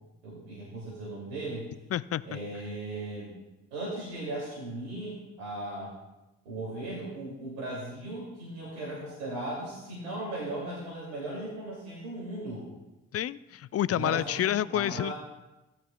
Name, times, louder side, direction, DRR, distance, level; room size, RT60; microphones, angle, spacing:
voice 1, 0.2-1.7 2.2-3.4 3.7-5.9 6.4-12.7 13.9-15.1, right 2 dB, 90° right, -6 dB, 2.9 m, -37 dB
voice 2, 1.9-2.2 13.1-15.1, left 11 dB, 45° left, 18 dB, 0.5 m, -28 dB
16.0 x 10.5 x 2.4 m, 1.0 s
hypercardioid pair, 40°, 34 cm